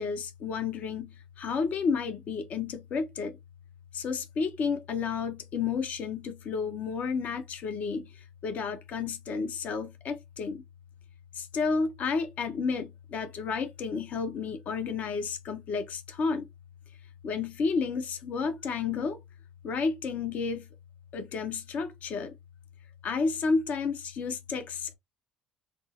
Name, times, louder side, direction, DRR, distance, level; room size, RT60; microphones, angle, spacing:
voice 1, 0.0-3.4 3.9-10.6 11.3-16.5 17.2-19.2 19.6-20.7 21.1-22.3 23.0-24.9, left 5 dB, 55° left, 0.8 m, -31 dB
3.4 x 2.0 x 4.1 m
supercardioid pair, 90°, 3 cm